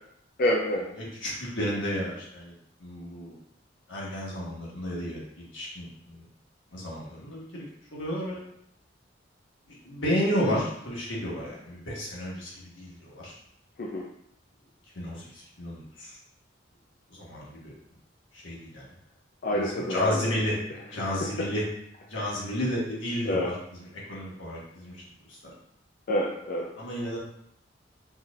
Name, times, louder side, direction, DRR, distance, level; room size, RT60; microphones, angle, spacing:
voice 1, 0.4-0.9 13.8-14.1 19.4-20.3 21.0-21.1 23.3-23.5 26.1-26.7, left 1 dB, 50° left, -3 dB, 0.5 m, -27 dB
voice 2, 0.9-2.5 2.8-3.4 3.9-6.2 6.7-8.4 9.7-13.4 14.9-16.2 17.1-17.7 18.3-18.9 19.5-20.6 20.8-21.6 22.0-25.0 25.3-25.5 26.8-27.2, equal, 85° left, -5 dB, 1.5 m, -32 dB
4.4 x 3.3 x 2.4 m, 0.73 s
head